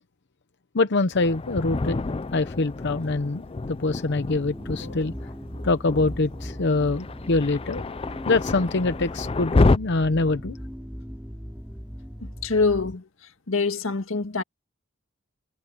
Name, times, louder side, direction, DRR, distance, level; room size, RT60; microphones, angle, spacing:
voice 1, 0.7-2.0 2.3-3.4 3.7-5.1 5.6-7.8 8.3-10.6, left 3 dB, 60° left, 0.8 m, -24 dB
Thunder, 1.1-9.8, left 3 dB, 30° left, 0.5 m, -28 dB
sound 1, 4.3-13.0, equal, 5° right, 4.1 m, -39 dB
voice 2, 12.2-13.0 13.5-14.4, left 4 dB, 90° left, 1.8 m, -25 dB
head